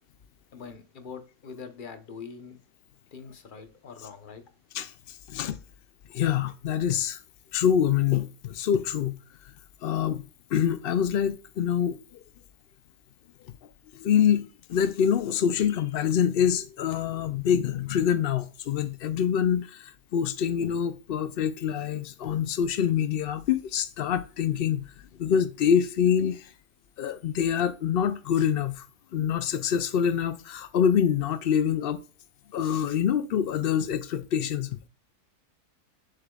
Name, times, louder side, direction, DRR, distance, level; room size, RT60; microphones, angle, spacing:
voice 1, 0.5-2.6 3.1-4.4, left 5 dB, 40° left, 0.9 m, -43 dB
voice 2, 4.7-5.6 6.1-7.2 7.5-9.1 9.8-10.2 10.5-12.0 13.5-13.6 13.9-24.8 25.2-26.5 27.0-28.9 29.1-32.0 32.5-34.8, left 8 dB, 85° left, 0.5 m, -25 dB
7.4 x 6.7 x 2.3 m
omnidirectional pair, 1.6 m